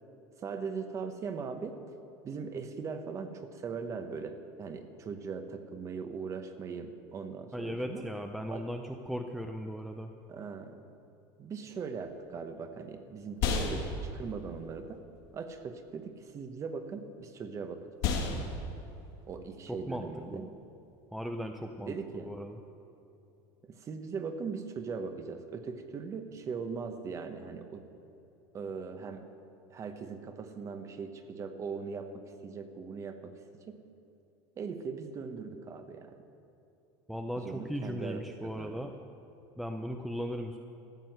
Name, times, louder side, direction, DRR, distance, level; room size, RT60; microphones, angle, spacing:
voice 1, 0.4-1.8 2.2-8.0 8.5-8.6 10.3-10.8 11.4-15.0 15.3-17.9 18.2-18.4 19.3-20.5 21.9-22.4 23.7-27.8 28.5-29.3 29.7-33.3 33.7-33.8 34.6-36.2 37.4-38.9, right 5 dB, 25° right, 8 dB, 0.9 m, -40 dB
voice 2, 7.5-10.1 19.7-20.5 21.1-22.6 37.1-38.9 39.6-40.6, equal, ahead, 4 dB, 0.5 m, -37 dB
sound 1, 12.0-21.7, left 4 dB, 60° left, 2.2 m, -37 dB
14.0 x 7.6 x 7.7 m, 2.9 s
supercardioid pair, 150°, 11 cm